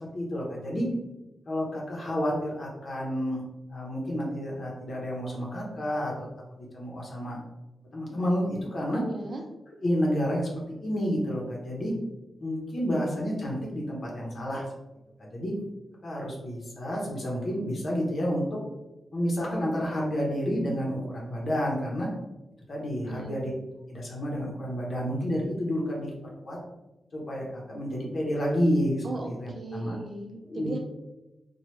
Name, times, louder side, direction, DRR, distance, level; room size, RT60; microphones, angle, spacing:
voice 1, 0.1-0.9 1.5-3.4 3.7-6.1 6.7-7.4 7.9-9.0 9.8-11.9 12.4-14.6 15.2-15.5 16.0-18.6 19.1-22.1 22.7-23.5 23.9-26.1 26.4-26.6 27.1-30.0 30.5-30.8, equal, 60° left, -3 dB, 0.8 m, -30 dB
voice 2, 9.0-9.4 23.1-23.5 29.0-30.8, right 2 dB, 50° right, 2 dB, 0.5 m, -38 dB
3.1 x 2.3 x 3.1 m, 1.0 s
wide cardioid pair, 95°, 0 cm